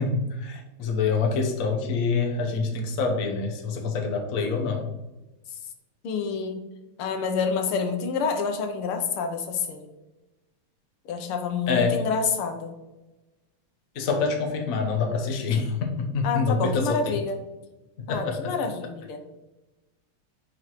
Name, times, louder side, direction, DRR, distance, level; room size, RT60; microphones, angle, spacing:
voice 1, 0.0-4.9 11.7-12.0 13.9-17.2 18.0-18.5, left 4 dB, 50° left, 3 dB, 1.1 m, -26 dB
voice 2, 6.0-6.6 7.0-9.9 11.1-12.7 16.2-17.4 18.1-19.2, left 5 dB, 90° left, 5 dB, 1.8 m, -28 dB
9.7 x 4.6 x 3.1 m, 1.1 s
omnidirectional pair, 2.4 m